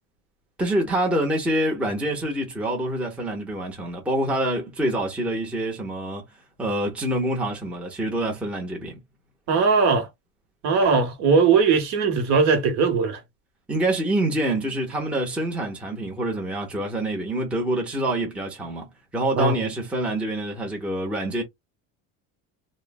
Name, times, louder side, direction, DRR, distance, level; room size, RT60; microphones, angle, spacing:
voice 1, 0.6-6.2 6.6-9.0 13.7-18.9 19.1-21.4, right 1 dB, 5° right, 0.6 m, -26 dB
voice 2, 9.5-10.1 10.6-13.2 19.4-19.5, right 5 dB, 55° right, 1.0 m, -19 dB
3.1 x 2.0 x 2.2 m
cardioid pair, 155°, 34 cm